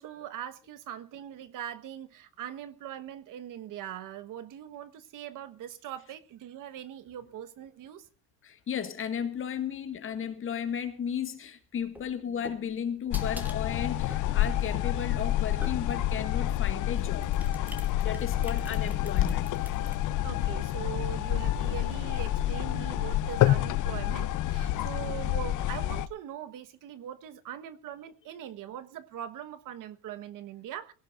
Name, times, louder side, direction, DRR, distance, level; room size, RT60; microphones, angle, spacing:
voice 1, 0.0-8.0 18.4-18.5 20.2-30.9, right 10 dB, 50° right, 1.3 m, -41 dB
voice 2, 8.4-17.3 18.0-19.5, left 8 dB, 30° left, 1.9 m, -34 dB
sound 1, 11.8-16.2 16.9-20.0, equal, 5° right, 2.3 m, -47 dB
sound 2, 13.1-26.1, left 13 dB, 50° left, 0.7 m, -28 dB
22.0 x 17.5 x 2.5 m
cardioid pair, 165°, 41 cm